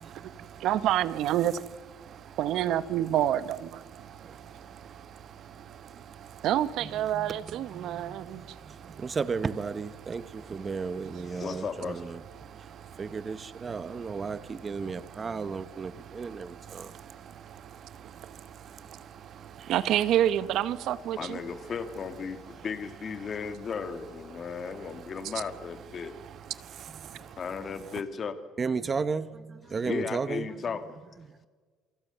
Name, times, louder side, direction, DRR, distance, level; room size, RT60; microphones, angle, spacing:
voice 1, 0.0-0.7 2.0-2.4 3.9-6.5 7.7-9.2 10.0-11.4 12.4-19.7 26.2-27.4, right 8 dB, 45° right, 1.4 m, -48 dB
voice 2, 0.6-1.6 2.4-3.8 6.4-8.4 19.7-21.4, right 11 dB, 60° right, 1.0 m, -27 dB
voice 3, 7.1-8.3 8.7-12.0 13.0-16.9 28.6-30.5, right 5 dB, 25° right, 0.8 m, -34 dB
voice 4, 11.2-12.2 21.2-26.2 27.1-28.4 29.8-30.9, left 5 dB, 35° left, 1.9 m, -35 dB
28.0 x 23.5 x 6.8 m
cardioid pair, 155°, 0 cm